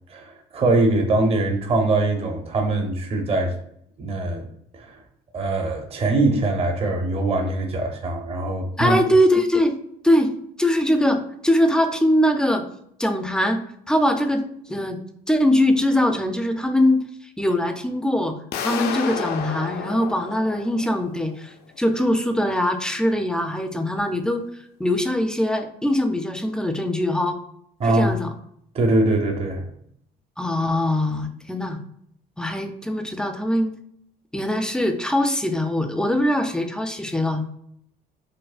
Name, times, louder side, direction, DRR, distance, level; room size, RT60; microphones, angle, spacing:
voice 1, 0.1-3.5 4.0-4.5 4.7-5.0 5.3-9.0 27.8-28.1 28.7-29.6, right 2 dB, 35° right, 3 dB, 0.6 m, -22 dB
voice 2, 8.8-9.8 10.0-10.3 10.6-12.6 13.0-13.6 13.9-15.0 15.3-17.0 17.4-18.3 18.6-24.5 24.8-27.4 27.8-28.3 30.4-31.8 32.4-33.7 34.3-37.5, left 1 dB, 5° left, 6 dB, 0.3 m, -22 dB
sound 1, 18.5-21.4, left 7 dB, 70° left, 0.4 m, -31 dB
4.6 x 2.0 x 2.4 m, 0.69 s
cardioid pair, 110°, 17 cm